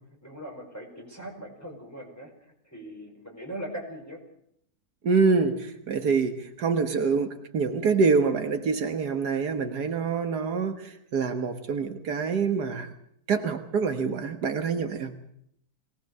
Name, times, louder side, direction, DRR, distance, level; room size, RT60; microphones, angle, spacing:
voice 1, 0.2-2.3 2.6-4.2, right 1 dB, 10° left, 1 dB, 5.1 m, -40 dB
voice 2, 5.0-12.9 13.3-15.1, right 5 dB, 75° right, 7 dB, 1.9 m, -26 dB
22.5 x 18.5 x 6.7 m, 0.71 s
omnidirectional pair, 1.7 m